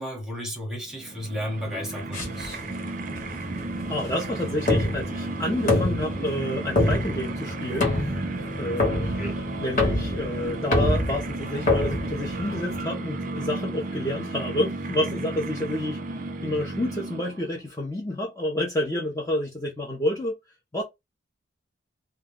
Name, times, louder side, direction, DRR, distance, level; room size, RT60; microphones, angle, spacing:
voice 1, 0.0-2.6 9.0-9.4, equal, ahead, 1.0 m, -33 dB
sound 1, 0.9-17.6, right 2 dB, 45° right, 0.5 m, -33 dB
sound 2, 2.1-12.8, left 1 dB, 40° left, 1.1 m, -27 dB
voice 2, 3.8-8.1 8.6-16.0 16.4-20.3 20.7-20.8, left 1 dB, 15° left, 0.6 m, -29 dB
2.2 x 2.2 x 3.4 m
head